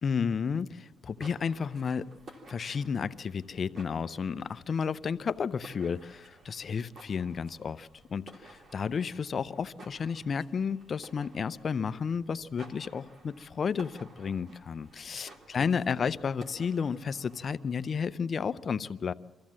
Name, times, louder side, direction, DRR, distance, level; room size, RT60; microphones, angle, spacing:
voice 1, 0.0-2.1 2.5-19.1, left 6 dB, 45° left, 14 dB, 0.6 m, -32 dB
sound 1, 0.9-18.3, right 2 dB, 55° right, 3.3 m, -54 dB
25.0 x 14.5 x 7.5 m, 1.2 s
cardioid pair, 90°, 0 cm